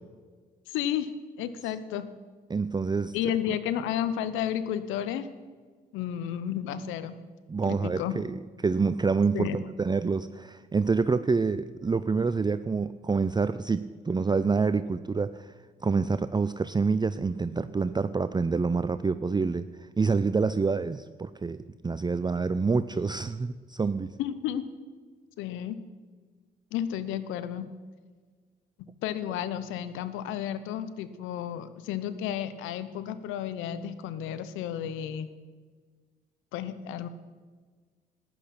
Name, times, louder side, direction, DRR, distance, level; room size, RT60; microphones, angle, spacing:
voice 1, 0.7-1.1 1.4-2.1 3.1-5.3 5.9-7.2 7.6-8.2 9.3-9.6 24.2-24.6 25.4-25.8 26.7-27.7 29.0-35.3 36.5-37.1, left 10 dB, 80° left, 13 dB, 0.8 m, -32 dB
voice 2, 2.5-3.2 3.5-3.6 7.5-8.3 8.6-15.5 15.8-24.1, right 4 dB, 20° right, 13 dB, 0.5 m, -27 dB
15.0 x 10.5 x 5.9 m, 1.5 s
hypercardioid pair, 50°, 20 cm